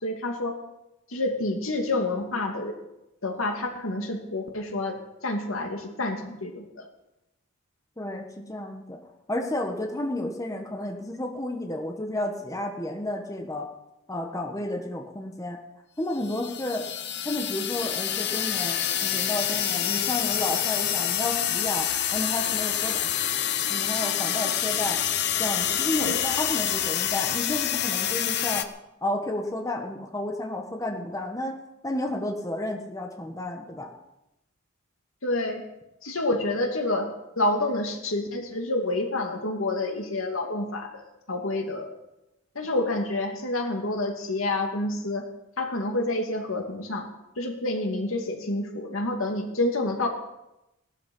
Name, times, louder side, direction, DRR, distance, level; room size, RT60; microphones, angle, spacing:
voice 1, 0.0-0.6 1.1-2.8 3.2-6.8 26.0-26.2 35.2-35.6 36.0-41.9 42.5-45.3 45.6-47.1 47.4-50.1, left 2 dB, 80° left, 3 dB, 2.5 m, -28 dB
voice 2, 8.0-9.0 9.3-13.7 14.1-15.6 16.0-16.9 17.2-23.1 23.7-25.0 25.4-28.7 29.0-31.6 31.8-33.9, left 1 dB, 15° left, 3 dB, 1.5 m, -31 dB
sound 1, 16.2-28.6, left 10 dB, 55° left, 0.9 m, -27 dB
18.0 x 12.5 x 5.5 m, 0.92 s
head